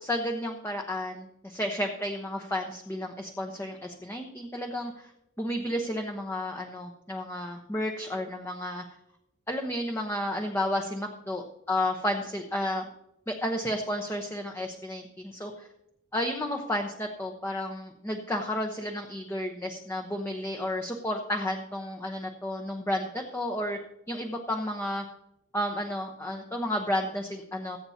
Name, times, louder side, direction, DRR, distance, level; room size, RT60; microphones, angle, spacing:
voice 1, 0.0-5.1 5.4-8.8 9.5-12.9 13.3-15.7 16.1-23.8 24.1-25.0 25.5-27.8, left 1 dB, 15° left, 2 dB, 0.9 m, -32 dB
22.0 x 8.6 x 2.8 m, 0.82 s
head